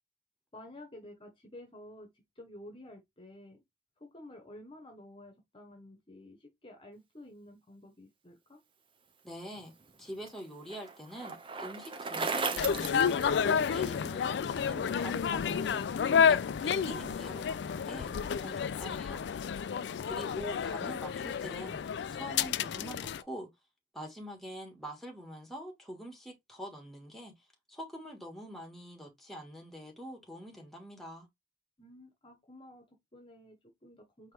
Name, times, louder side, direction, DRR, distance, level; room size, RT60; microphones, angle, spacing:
voice 1, 0.5-3.6 4.0-8.6 31.8-34.3, left 1 dB, 30° left, 1.1 m, -52 dB
voice 2, 9.2-9.7 10.0-13.3 13.7-15.9 16.3-19.3 20.1-21.8 22.1-23.5 23.9-27.3 27.7-31.3, equal, ahead, 1.5 m, -45 dB
Bicycle, 9.6-14.0, right 4 dB, 30° right, 0.6 m, -37 dB
sound 1, 12.6-23.2, left 7 dB, 70° left, 0.3 m, -30 dB
4.6 x 3.0 x 3.4 m
head